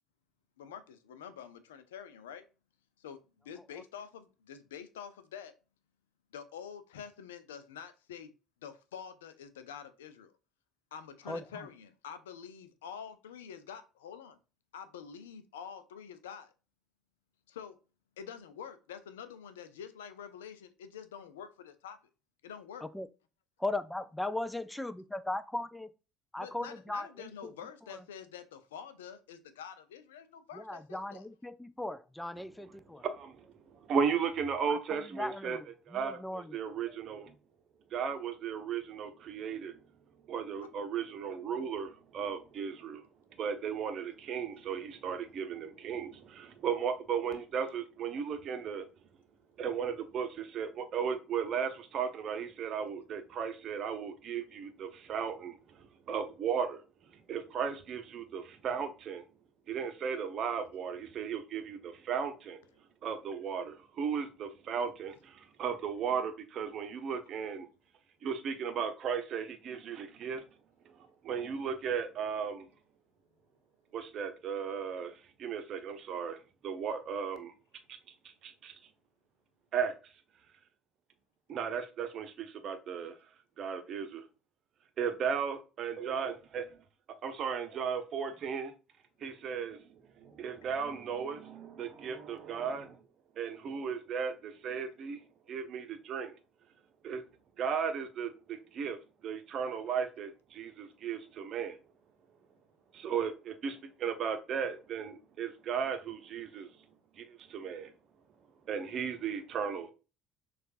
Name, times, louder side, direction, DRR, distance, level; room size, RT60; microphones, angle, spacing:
voice 1, 0.6-2.4 3.0-5.5 6.3-8.3 8.6-10.3 10.9-14.4 14.7-16.5 17.5-17.8 18.2-22.0 22.4-22.8 26.4-31.3 106.5-106.6, left 7 dB, 70° left, 0.5 m, -47 dB
voice 2, 11.3-11.7 22.8-23.1 23.6-25.9 26.3-27.5 27.9-28.0 30.5-33.0 34.7-35.7 35.9-36.6, left 2 dB, 5° left, 0.4 m, -38 dB
voice 3, 33.0-35.6 35.9-37.4 37.9-39.8 40.3-43.0 43.4-48.9 49.6-56.8 57.1-59.2 59.7-62.6 63.0-67.7 68.2-70.4 71.2-72.7 73.9-76.4 76.6-77.5 77.9-78.0 78.4-78.7 79.7-79.9 81.5-83.1 83.6-84.2 85.0-86.8 87.2-88.7 89.2-93.0 93.4-95.2 95.5-96.3 97.0-97.2 97.6-99.0 99.2-101.8 102.9-106.7 107.2-107.9 108.7-109.9, right 7 dB, 45° right, 0.8 m, -35 dB
6.4 x 2.5 x 2.6 m
figure-of-eight pair, 60°, 0 cm